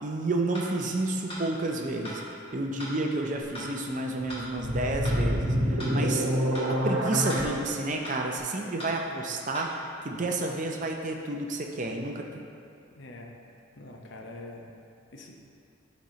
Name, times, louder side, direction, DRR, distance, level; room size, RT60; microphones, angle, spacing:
voice 1, 0.0-2.2 2.5-6.3 6.7-12.4, right 2 dB, 35° right, 1 dB, 0.5 m, -30 dB
sound 1, 0.6-0.7 1.3-1.4 2.1-2.2 2.8-2.9 3.5-3.7 4.3-4.4 5.0-5.2 5.8-5.9 6.5-6.7 7.3-7.4 8.0-8.2 8.8-9.0 9.6-9.7, equal, 25° left, 1.7 m, -39 dB
sound 2, 4.2-7.4, equal, 85° right, 1.1 m, -27 dB
voice 2, 13.0-13.4 13.8-14.7 15.1-15.4, left 2 dB, 60° left, 1 dB, 0.7 m, -44 dB
11.5 x 4.2 x 3.1 m, 2.6 s
head